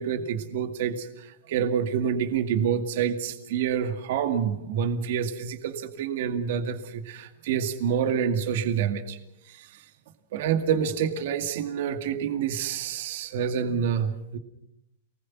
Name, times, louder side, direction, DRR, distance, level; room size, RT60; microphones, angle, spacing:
voice 1, 0.0-9.2 9.4-9.9 10.3-14.4, right 8 dB, 45° right, 8 dB, 2.1 m, -27 dB
28.5 x 20.0 x 6.1 m, 0.78 s
supercardioid pair, 180°, 0 cm